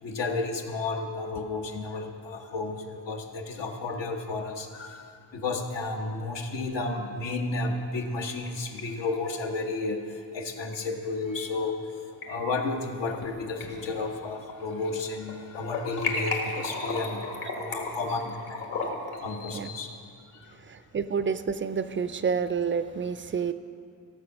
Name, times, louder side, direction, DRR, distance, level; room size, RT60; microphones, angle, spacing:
voice 1, 0.0-5.0 5.3-10.0 10.3-11.8 12.3-18.7 19.2-20.0, left 3 dB, 80° left, 3 dB, 1.3 m, -32 dB
sound 1, 8.1-8.8 9.1-9.2 10.7-10.8 11.9-12.3 12.8-13.3 13.6-14.9 15.2-19.2, left 3 dB, 60° left, 2.0 m, -34 dB
voice 2, 20.9-23.5, right 6 dB, 30° right, 12 dB, 0.4 m, -28 dB
15.0 x 7.4 x 6.0 m, 2.3 s
wide cardioid pair, 140°, 43 cm